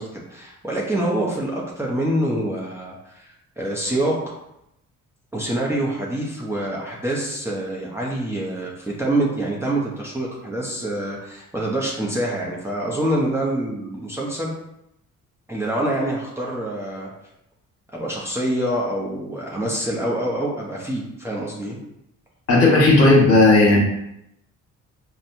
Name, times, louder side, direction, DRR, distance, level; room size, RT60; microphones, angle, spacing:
voice 1, 0.0-4.3 5.3-14.5 15.5-17.1 17.9-21.8, right 1 dB, 10° right, -5 dB, 0.7 m, -26 dB
voice 2, 22.5-23.8, left 2 dB, 50° left, -4 dB, 1.4 m, -13 dB
4.1 x 2.2 x 2.6 m, 0.81 s
cardioid pair, 90°, 30 cm